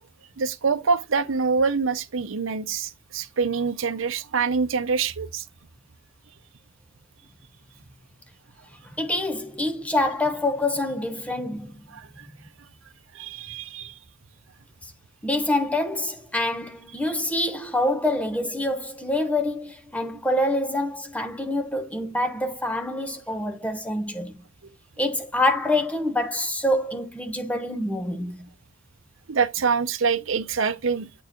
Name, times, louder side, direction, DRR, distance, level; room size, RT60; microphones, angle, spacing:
voice 1, 0.4-5.4 11.9-12.3 13.1-13.9 29.3-31.1, right 5 dB, 70° right, 0.7 m, -25 dB
voice 2, 9.0-11.7 15.2-24.4 25.0-28.4, left 1 dB, 5° left, 1.0 m, -26 dB
8.2 x 4.6 x 2.9 m
head